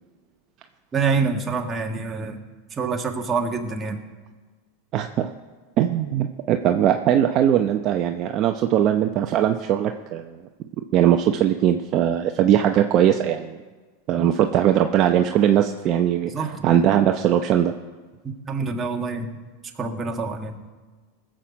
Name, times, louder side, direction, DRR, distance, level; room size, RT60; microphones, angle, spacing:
voice 1, 0.9-2.4 2.7-4.0 14.1-14.3 16.3-16.7 18.5-19.4 19.8-20.6, right 4 dB, 20° right, 3 dB, 1.7 m, -26 dB
voice 2, 4.9-5.3 5.8-10.4 10.9-13.6 14.1-17.7, right 10 dB, 45° right, 5 dB, 0.7 m, -20 dB
19.0 x 7.5 x 5.2 m, 1.4 s
hypercardioid pair, 110°, 0 cm